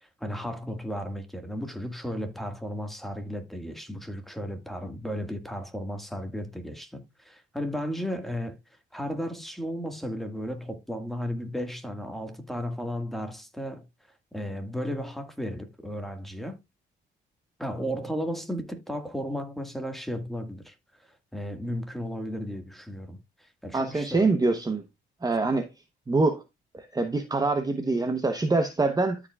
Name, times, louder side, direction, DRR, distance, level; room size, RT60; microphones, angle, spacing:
voice 1, 0.0-8.6 8.9-13.9 14.3-16.6 17.6-20.7 21.3-24.3, equal, ahead, 1.8 m, -34 dB
voice 2, 23.7-24.8 25.2-25.7 26.1-26.4 26.8-29.2, right 3 dB, 20° right, 1.0 m, -25 dB
13.0 x 5.0 x 2.4 m
cardioid pair, 90°, 20 cm